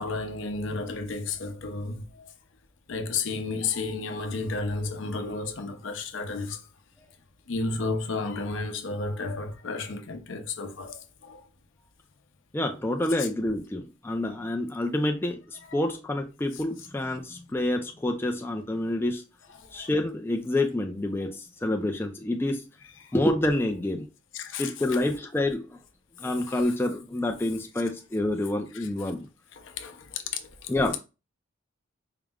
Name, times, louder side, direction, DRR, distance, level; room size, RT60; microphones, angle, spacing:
voice 1, 0.0-2.3 2.9-6.6 7.5-11.4 13.2-13.3 15.7-15.8 16.5-16.6 19.6-19.9 23.0-23.1 24.3-25.1 26.2-26.7 28.7-28.9 29.5-30.7, left 3 dB, 65° left, 0.6 m, -33 dB
voice 2, 12.5-19.2 19.7-22.6 23.1-24.1 24.6-25.7 26.2-29.3 30.7-31.0, left 1 dB, 10° left, 0.4 m, -28 dB
4.7 x 2.0 x 3.5 m
head